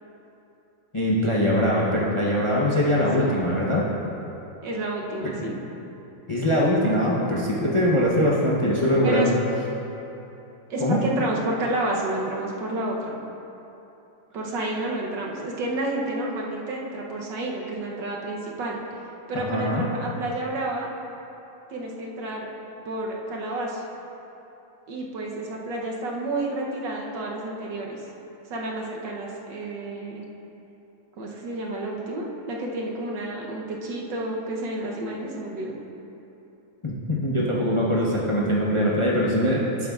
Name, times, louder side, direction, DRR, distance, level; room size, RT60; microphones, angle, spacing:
voice 1, 0.9-3.8 5.2-5.5 6.3-9.4 10.8-11.0 19.5-19.8 36.8-39.9, equal, 45° left, -6 dB, 0.3 m, -22 dB
voice 2, 4.6-5.5 9.0-9.3 10.7-13.2 14.3-18.8 19.3-20.9 21.7-22.5 22.8-23.8 24.9-28.0 28.5-30.2 31.2-35.7, right 2 dB, 70° right, -2 dB, 1.6 m, -30 dB
12.0 x 8.5 x 2.4 m, 3.0 s
omnidirectional pair, 2.0 m